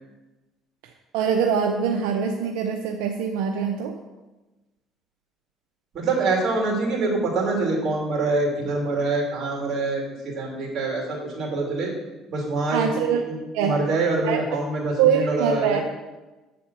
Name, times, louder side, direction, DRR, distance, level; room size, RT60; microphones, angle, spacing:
voice 1, 0.8-4.0 12.7-13.2 13.5-13.8 14.2-14.4 15.0-15.8, right 7 dB, 90° right, 4 dB, 0.5 m, -23 dB
voice 2, 5.9-11.9 12.3-12.9 13.3-15.8, right 3 dB, 55° right, 0 dB, 2.8 m, -25 dB
8.2 x 4.3 x 6.1 m, 1.1 s
supercardioid pair, 90°, 0 cm